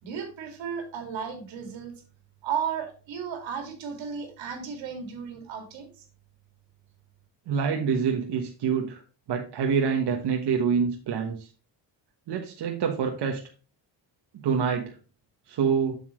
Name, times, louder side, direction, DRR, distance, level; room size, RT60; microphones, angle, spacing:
voice 1, 0.0-1.9 2.4-6.0, right 7 dB, 90° right, 5 dB, 2.6 m, -34 dB
voice 2, 7.5-9.0 9.3-11.5 12.3-13.4 14.4-15.0 15.5-16.0, right 6 dB, 65° right, 2 dB, 1.3 m, -26 dB
7.5 x 7.1 x 3.1 m, 0.35 s
cardioid pair, 140°, 44 cm